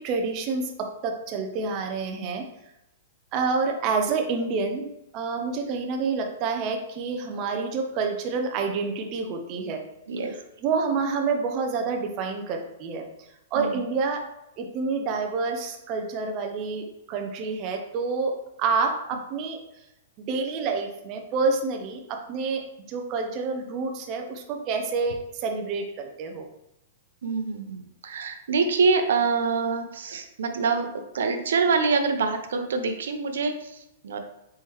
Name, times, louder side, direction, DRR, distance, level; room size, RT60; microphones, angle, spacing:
voice 1, 0.0-2.5 3.3-4.9 5.1-9.8 10.6-13.1 13.5-14.3 14.6-19.6 20.2-26.5, right 4 dB, 30° right, 3 dB, 0.4 m, -28 dB
voice 2, 27.2-30.9 31.1-34.2, right 4 dB, 80° right, 6 dB, 0.6 m, -25 dB
4.3 x 3.6 x 3.0 m, 0.89 s
hypercardioid pair, 170°, 0 cm